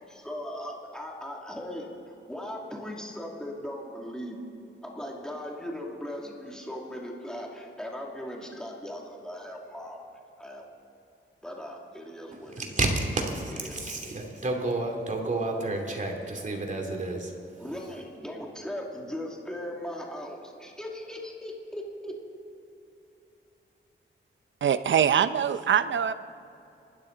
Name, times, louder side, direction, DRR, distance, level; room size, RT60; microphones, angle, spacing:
voice 1, 0.0-4.4 4.8-10.0 10.4-10.6 11.4-12.6 13.6-13.8 17.6-22.1, left 1 dB, 5° left, -1 dB, 2.4 m, -38 dB
voice 2, 12.5-17.6, right 2 dB, 40° right, 1 dB, 2.7 m, -30 dB
voice 3, 24.6-26.1, right 8 dB, 70° right, 12 dB, 0.7 m, -23 dB
26.5 x 13.0 x 3.9 m, 2.8 s
wide cardioid pair, 115°, 20 cm